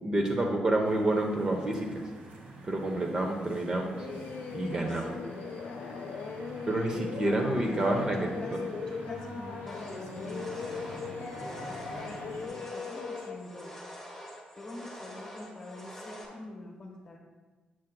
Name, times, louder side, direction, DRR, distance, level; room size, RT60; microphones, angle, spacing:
voice 1, 0.0-2.1 2.6-4.1 4.5-5.2 6.7-8.6, right 1 dB, 25° right, 2 dB, 0.6 m, -29 dB
sound 1, 0.8-12.5, right 1 dB, 55° right, 1.2 m, -46 dB
Singing, 4.0-13.4, left 5 dB, 75° left, 0.5 m, -39 dB
voice 2, 4.7-5.0 5.5-5.6 5.9-6.2 6.5-13.8 14.1-14.2 14.6-17.2, left 1 dB, 25° left, 0 dB, 1.0 m, -46 dB
sound 2, 9.7-16.3, equal, 5° left, 1.3 m, -46 dB
7.5 x 7.3 x 2.2 m, 1.2 s
wide cardioid pair, 175°, 3 cm